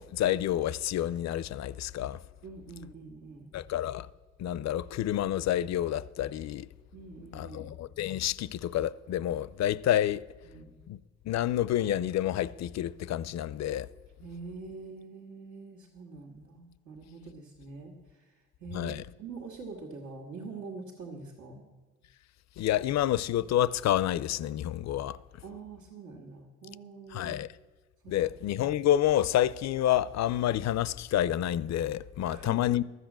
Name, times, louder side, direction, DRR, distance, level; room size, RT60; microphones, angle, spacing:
voice 1, 0.0-2.2 3.5-4.1 4.4-6.7 7.3-10.2 10.9-11.0 11.3-13.9 18.7-19.0 22.6-25.2 27.1-27.5 28.1-32.8, left 12 dB, 60° left, 0.5 m, -28 dB
voice 2, 2.4-3.5 6.9-7.7 10.4-10.8 14.2-21.6 25.4-27.4 28.0-28.1 32.2-32.8, right 4 dB, 80° right, 1.9 m, -45 dB
12.5 x 8.2 x 7.5 m
cardioid pair, 90°, 30 cm